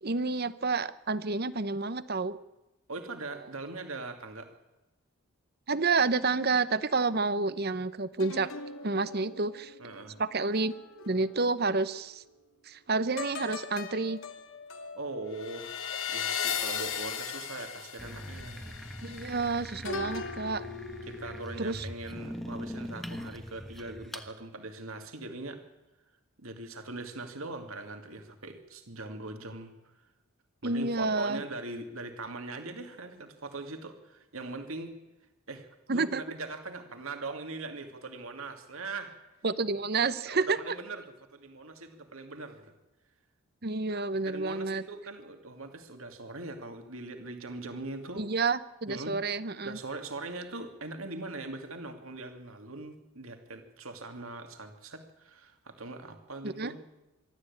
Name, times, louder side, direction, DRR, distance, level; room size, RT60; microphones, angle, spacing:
voice 1, 0.0-2.4 5.7-8.5 8.8-9.7 10.2-10.7 11.1-12.2 12.6-14.2 19.0-20.6 21.6-21.8 30.6-31.4 35.9-36.2 39.4-40.7 43.6-44.8 48.2-49.8 56.4-56.7, right 3 dB, 45° right, 15 dB, 0.9 m, -29 dB
voice 2, 2.9-4.5 9.8-10.2 14.9-15.7 16.1-18.7 19.8-20.1 21.0-25.6 26.4-29.7 30.6-34.9 35.5-39.2 40.3-41.0 41.3-42.7 43.9-48.3 48.9-49.2 49.6-56.8, right 2 dB, 70° right, 6 dB, 2.5 m, -41 dB
sound 1, 8.2-11.8 13.2-21.7 22.1-22.4, left 6 dB, 65° left, 2.1 m, -39 dB
sound 2, 18.0-24.3, equal, ahead, 1.3 m, -42 dB
24.5 x 13.0 x 8.6 m, 1.0 s
head